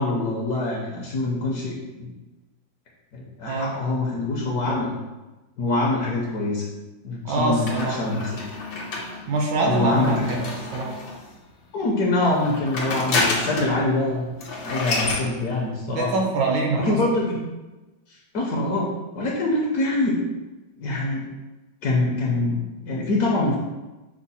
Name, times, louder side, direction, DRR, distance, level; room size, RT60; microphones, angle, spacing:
voice 1, 0.0-2.1 3.1-5.0 5.6-6.6 7.0-8.4 9.7-10.4 11.7-14.4 14.6-16.1 16.7-17.4 18.3-18.9 19.1-20.2 20.8-21.2 21.8-23.6, left 2 dB, 60° left, -2 dB, 1.1 m, -24 dB
voice 2, 7.2-8.3 9.3-11.0 15.9-17.0, right 3 dB, 70° right, 0 dB, 1.2 m, -25 dB
sound 1, 7.7-11.3 12.3-13.8 14.1-14.2 14.4-15.3, left 3 dB, 80° left, 1.7 m, -29 dB
6.0 x 2.0 x 4.1 m, 1.1 s
omnidirectional pair, 2.1 m